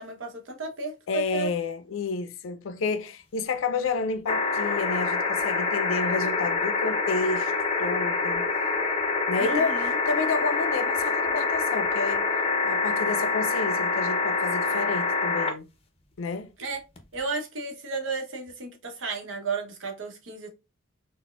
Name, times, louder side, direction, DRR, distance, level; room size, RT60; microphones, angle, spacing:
voice 1, 0.0-1.5 9.4-9.9 16.6-16.8 17.1-20.5, right 4 dB, 70° right, 0.8 m, -33 dB
voice 2, 1.1-7.5 7.8-8.4 9.3-12.3 12.6-15.7 16.2-16.5, left 4 dB, 90° left, 0.4 m, -30 dB
sound 1, 4.3-15.5 17.0-17.1, left 4 dB, 30° left, 0.5 m, -26 dB
4.0 x 2.0 x 2.2 m
head